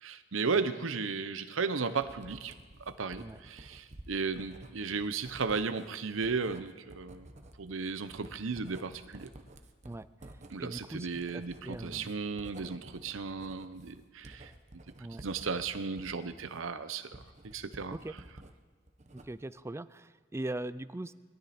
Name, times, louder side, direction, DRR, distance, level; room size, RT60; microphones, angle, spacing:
voice 1, 0.0-2.5 2.9-7.3 7.6-9.3 10.5-14.5 15.2-17.2 17.5-18.0, right 4 dB, 90° right, 11 dB, 0.8 m, -35 dB
Writing, 2.0-18.5 18.9-19.6, right 1 dB, 35° right, 1.0 m, -52 dB
voice 2, 10.6-12.1 15.0-15.3 17.9-18.2 19.1-21.1, right 1 dB, 15° right, 16 dB, 0.4 m, -40 dB
21.5 x 12.5 x 4.3 m, 1.5 s
head